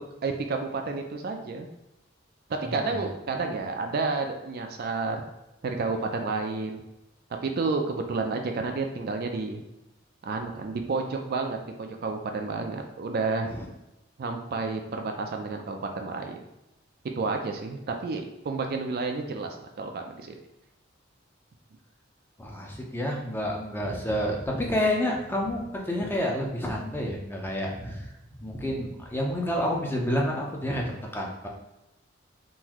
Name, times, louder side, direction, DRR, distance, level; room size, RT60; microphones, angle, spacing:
voice 1, 0.2-1.7 2.7-5.2 5.6-6.8 7.3-9.6 10.2-13.5 14.2-16.4 17.2-20.4, right 3 dB, 50° right, 4 dB, 0.4 m, -30 dB
voice 2, 2.6-3.1 13.5-13.7 22.4-28.1 28.4-31.5, left 1 dB, 10° left, -1 dB, 0.6 m, -29 dB
3.8 x 2.6 x 2.9 m, 0.94 s
head